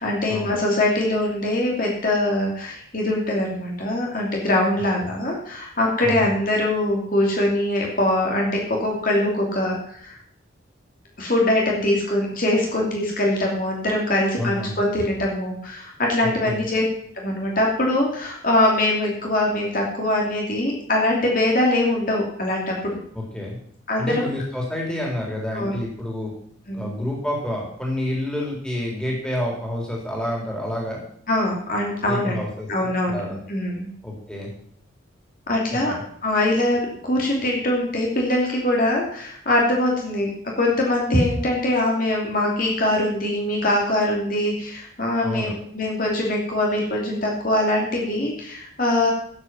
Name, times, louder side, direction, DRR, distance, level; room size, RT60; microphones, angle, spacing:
voice 1, 0.0-10.2 11.2-16.8 17.1-22.7 23.9-24.3 25.5-25.7 26.7-26.9 31.3-32.4 32.7-33.9 35.5-35.9 36.2-40.3 40.6-49.1, left 1 dB, 45° left, -1 dB, 2.8 m, -22 dB
voice 2, 6.0-6.4 14.4-14.8 16.2-16.7 23.1-23.6 24.0-26.3 26.7-31.0 32.0-33.4 34.0-34.5 35.7-36.0 45.2-45.5, left 1 dB, 5° left, -2 dB, 3.6 m, -29 dB
12.0 x 8.7 x 6.0 m, 0.63 s
head